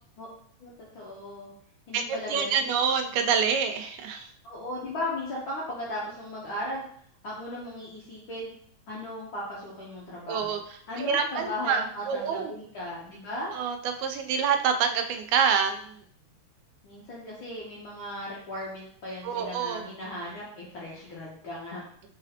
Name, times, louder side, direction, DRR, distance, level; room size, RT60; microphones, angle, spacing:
voice 1, 0.6-1.5 1.9-2.7 4.4-6.8 7.2-8.5 8.9-10.6 10.9-13.6 16.8-22.1, left 1 dB, 70° left, -5 dB, 1.2 m, -37 dB
voice 2, 2.3-4.3 10.3-10.6 11.0-12.5 13.5-16.0 19.2-19.8, right 6 dB, 90° right, 6 dB, 2.0 m, -26 dB
4.3 x 4.0 x 2.8 m, 0.62 s
omnidirectional pair, 3.3 m